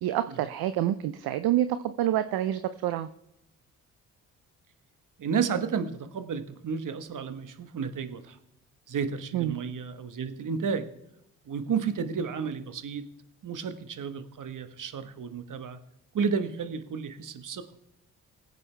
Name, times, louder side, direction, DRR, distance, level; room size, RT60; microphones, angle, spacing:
voice 1, 0.0-3.1 9.3-9.6, right 12 dB, 65° right, 12 dB, 0.6 m, -27 dB
voice 2, 5.2-8.3 8.9-10.9 11.5-13.1 13.4-15.8 16.1-17.6, right 6 dB, 50° right, 10 dB, 1.3 m, -32 dB
18.0 x 8.3 x 3.3 m, 0.81 s
hypercardioid pair, 45°, 39 cm